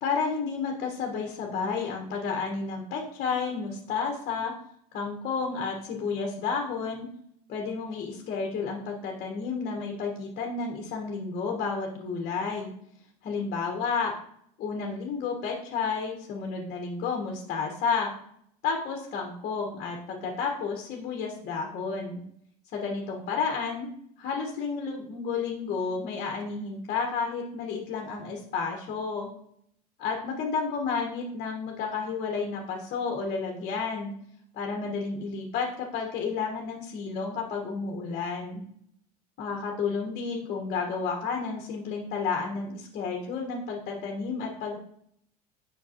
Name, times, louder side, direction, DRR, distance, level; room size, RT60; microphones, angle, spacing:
voice 1, 0.0-4.5 4.9-7.1 7.5-12.7 13.2-14.1 14.6-18.1 18.6-22.2 22.7-23.9 24.2-29.3 30.0-34.1 34.5-38.6 39.4-44.8, left 5 dB, 50° left, 1 dB, 1.4 m, -31 dB
7.2 x 5.8 x 2.9 m, 0.70 s
hypercardioid pair, 90°, 20 cm